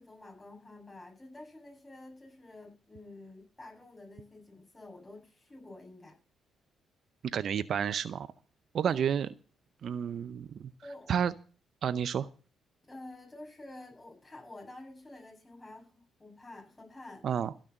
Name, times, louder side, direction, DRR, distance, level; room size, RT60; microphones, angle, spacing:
voice 1, 0.0-6.1 8.8-9.0 10.8-11.2 12.9-17.3, left 2 dB, 20° left, 1 dB, 7.3 m, -49 dB
voice 2, 7.2-8.3 8.7-9.3 9.8-10.7 11.1-11.3 11.8-12.3 17.2-17.5, right 8 dB, 60° right, 15 dB, 0.6 m, -30 dB
16.0 x 6.3 x 7.8 m, 0.37 s
cardioid pair, 90°, 0 cm